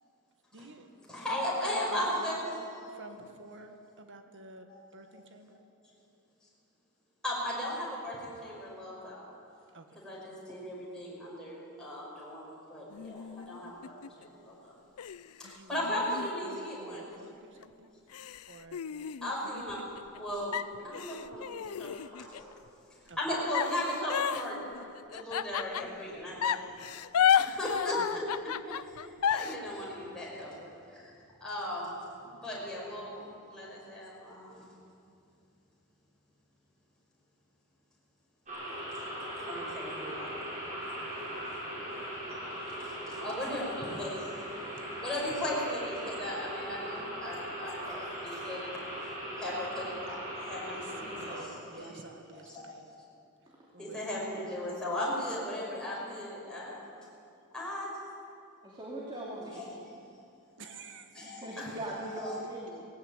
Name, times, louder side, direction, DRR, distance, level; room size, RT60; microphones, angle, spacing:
voice 1, 0.5-0.9 1.3-5.6 9.7-10.0 15.4-16.1 16.4-17.9 18.5-18.9 23.1-23.2 28.0-28.2 41.0-41.2 50.7-52.9 53.7-54.3 60.6-61.3, right 2 dB, 60° right, 6 dB, 1.8 m, -50 dB
voice 2, 1.1-2.6 2.8-2.9 4.7-5.2 7.2-9.3 10.0-14.8 15.4-17.1 19.2-19.8 20.2-22.5 23.2-26.8 27.4-31.1 31.4-32.0 32.4-34.7 39.4-40.4 41.4-41.5 42.7-44.5 44.9-48.6 49.4-52.0 52.3-52.7 53.8-56.8 57.5-57.9 59.5-59.8 61.1-61.7 62.1-62.4, left 1 dB, 5° left, -6 dB, 5.7 m, -37 dB
sound 1, 12.9-14.3 15.0-17.2 17.6-17.7 18.1-20.2 20.5-22.5 23.5-26.0 26.4-29.5, left 8 dB, 85° left, 0.5 m, -32 dB
sound 2, 38.5-51.4, equal, 35° right, 7.4 m, -39 dB
voice 3, 58.6-59.8 61.4-62.8, right 1 dB, 20° right, -4 dB, 2.8 m, -40 dB
19.0 x 17.0 x 9.0 m, 2.5 s
head